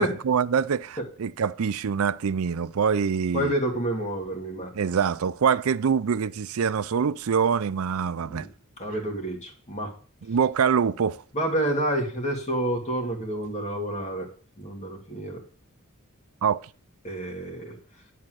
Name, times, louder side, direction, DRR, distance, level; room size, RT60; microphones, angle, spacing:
voice 1, 0.0-3.5 4.7-8.5 10.3-11.2 16.4-16.7, right 6 dB, 70° right, 0.5 m, -25 dB
voice 2, 3.3-4.7 8.2-8.5 8.8-9.9 11.3-14.3 14.6-15.4 17.0-17.8, right 1 dB, 30° left, 2.3 m, -29 dB
11.0 x 4.3 x 7.8 m
head